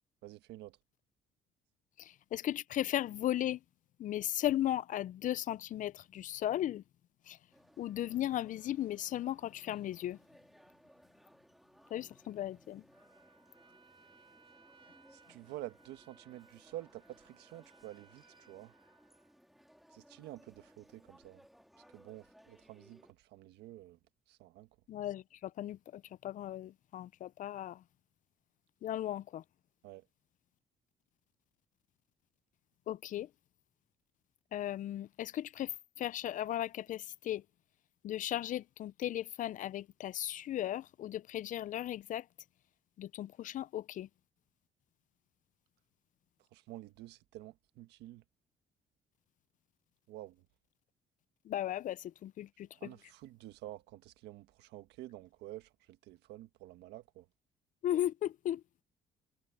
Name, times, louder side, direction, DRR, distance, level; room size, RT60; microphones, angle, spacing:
voice 1, 0.2-0.8 15.1-18.7 19.9-21.4 21.9-24.0 24.3-24.7 29.8-30.0 46.5-48.2 50.1-50.4 52.8-57.3, right 15 dB, 85° right, 1.5 m, -49 dB
voice 2, 2.0-3.6 4.0-6.8 7.3-7.4 7.8-10.2 11.9-12.8 24.9-27.8 28.8-29.4 32.9-33.3 34.5-37.4 38.0-42.3 43.0-44.1 51.4-52.9 57.8-58.6, left 12 dB, 50° left, 0.4 m, -36 dB
sound 1, 7.5-23.1, equal, ahead, 2.4 m, -64 dB
Trumpet, 12.9-19.4, right 5 dB, 30° right, 5.2 m, -65 dB
cardioid pair, 110°, 17 cm